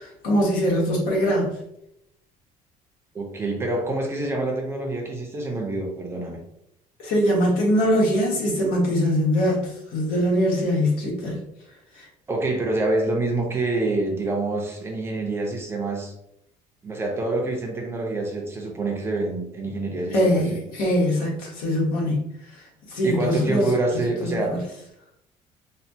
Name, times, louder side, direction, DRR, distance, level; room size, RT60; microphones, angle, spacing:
voice 1, 0.0-1.6 7.0-11.4 12.0-12.1 20.1-22.3 22.9-23.7 24.2-24.6, equal, 85° left, -3 dB, 1.3 m, -22 dB
voice 2, 3.1-6.4 12.3-16.1 16.8-20.6 23.0-24.6, right 2 dB, 15° right, 0 dB, 0.5 m, -26 dB
4.2 x 2.2 x 2.7 m, 0.78 s
cardioid pair, 175°, 15 cm